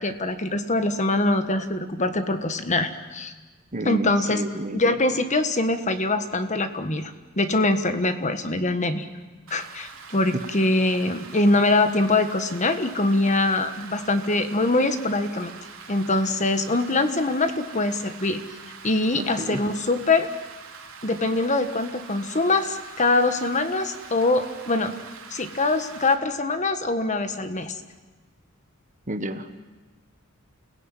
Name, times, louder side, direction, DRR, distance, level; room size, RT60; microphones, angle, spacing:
voice 1, 0.0-3.3 3.8-4.4 4.7-9.1 9.5-15.5 15.9-18.4 18.8-20.3 21.0-24.9 25.3-27.7, left 2 dB, 35° left, 9 dB, 1.5 m, -23 dB
voice 2, 3.7-4.8 19.1-19.6 29.1-29.6, right 1 dB, 35° right, 9 dB, 1.4 m, -31 dB
Rain, 9.5-26.1, right 6 dB, 75° right, 3.3 m, -44 dB
29.5 x 17.5 x 9.2 m, 1.3 s
head